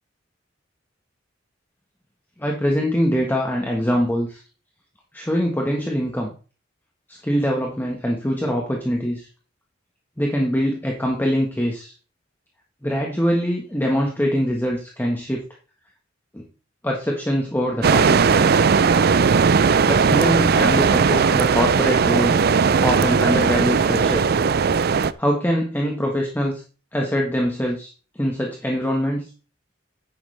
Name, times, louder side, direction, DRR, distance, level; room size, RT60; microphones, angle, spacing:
voice 1, 2.4-4.4 5.1-6.3 7.2-9.3 10.2-11.9 12.8-15.4 16.3-16.4 16.8-18.2 19.9-22.4 22.8-24.3 25.2-26.6 26.9-27.9 28.2-29.2, equal, 10° left, 0 dB, 1.4 m, -23 dB
sound 1, 17.8-25.1, right 5 dB, 55° right, 0.5 m, -17 dB
10.0 x 9.6 x 3.4 m, 0.36 s
head